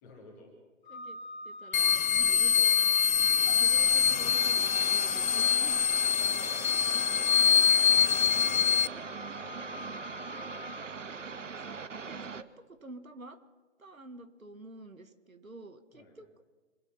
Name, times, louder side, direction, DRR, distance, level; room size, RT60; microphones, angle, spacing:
voice 1, 0.0-0.6 2.2-2.4 6.1-7.4 7.7-9.8 15.9-16.2, left 2 dB, 15° left, 0 dB, 2.5 m, -54 dB
Organ, 0.8-11.6, left 1 dB, 40° left, 2.7 m, -45 dB
voice 2, 1.5-3.2 3.6-5.9 11.2-13.4 13.8-16.4, right 2 dB, 85° right, 8 dB, 1.9 m, -49 dB
sound 1, 1.7-8.9, left 7 dB, 85° left, 0.5 m, -24 dB
sound 2, 3.3-12.4, right 5 dB, 65° right, 1.0 m, -42 dB
26.5 x 9.3 x 5.8 m, 1.3 s
figure-of-eight pair, 155°, 40 cm